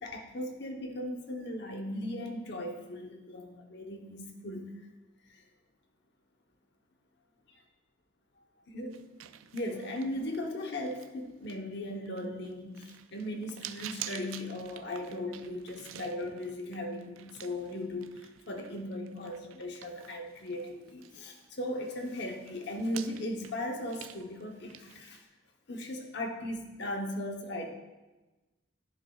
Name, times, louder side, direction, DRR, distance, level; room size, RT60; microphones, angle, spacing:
voice 1, 0.0-4.9 5.3-5.4 8.7-9.0 9.5-25.2 25.7-27.7, left 1 dB, 55° left, 3 dB, 0.9 m, -37 dB
sound 1, 8.9-21.5 21.8-25.2, right 11 dB, 80° right, 0.3 m, -49 dB
10.5 x 7.0 x 2.4 m, 1.1 s
head